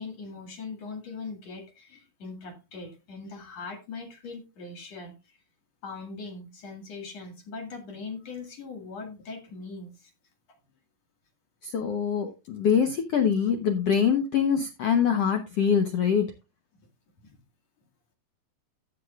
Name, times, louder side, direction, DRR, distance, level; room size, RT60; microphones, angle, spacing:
voice 1, 0.0-5.4 5.8-10.1 17.2-17.4, left 4 dB, 50° left, 4 dB, 2.8 m, -40 dB
voice 2, 11.6-16.2, left 7 dB, 85° left, 6 dB, 1.3 m, -24 dB
14.0 x 8.4 x 2.4 m, 0.27 s
omnidirectional pair, 4.3 m